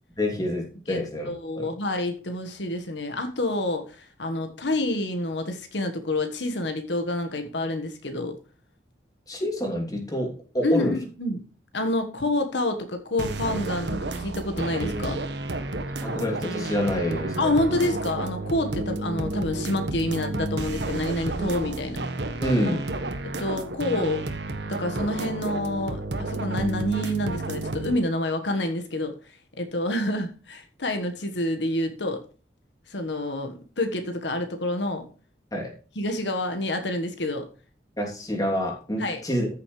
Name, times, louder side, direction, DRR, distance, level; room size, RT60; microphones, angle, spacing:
voice 1, 0.2-1.7 9.3-10.9 16.0-17.5 22.4-22.9 35.5-35.7 38.0-39.5, equal, 20° left, 0 dB, 3.0 m, -27 dB
voice 2, 0.9-8.4 10.6-11.4 11.7-15.2 17.4-22.0 23.2-24.2 24.6-29.1 29.6-32.2 32.9-35.1 35.9-37.4 39.0-39.2, left 1 dB, 85° left, 6 dB, 1.5 m, -28 dB
sound 1, 13.2-28.0, right 2 dB, 75° right, 1.4 m, -31 dB
14.0 x 6.9 x 3.3 m, 0.37 s
head